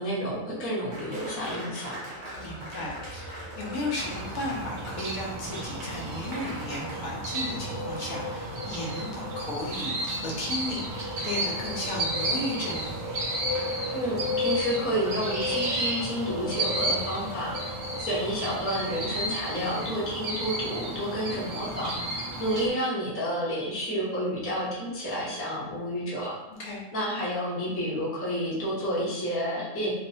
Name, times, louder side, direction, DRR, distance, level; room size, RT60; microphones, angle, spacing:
voice 1, 0.0-2.0 13.9-17.6 18.0-26.4 26.9-29.9, equal, 15° left, -7 dB, 0.5 m, -30 dB
Applause, 0.9-6.9, right 1 dB, 45° right, 0.8 m, -42 dB
sound 1, 2.3-19.2, left 3 dB, 65° left, 0.7 m, -38 dB
voice 2, 2.4-13.0 26.5-26.8, left 1 dB, 90° left, -3 dB, 1.2 m, -35 dB
sound 2, 4.0-22.7, right 1 dB, 65° right, 0.4 m, -33 dB
2.8 x 2.0 x 2.7 m, 0.95 s
omnidirectional pair, 1.4 m